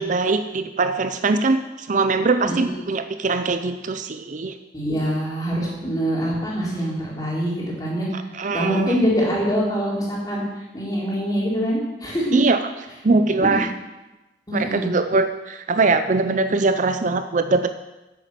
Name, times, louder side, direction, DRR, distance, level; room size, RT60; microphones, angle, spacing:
voice 1, 0.0-4.6 8.3-8.9 12.3-12.6 13.0-13.7 14.5-17.7, right 3 dB, 45° right, 9 dB, 0.5 m, -21 dB
voice 2, 4.7-8.1 8.4-12.4 13.5-13.6 14.5-14.9, equal, 20° left, -5 dB, 4.1 m, -24 dB
10.5 x 8.4 x 7.6 m, 1.1 s
head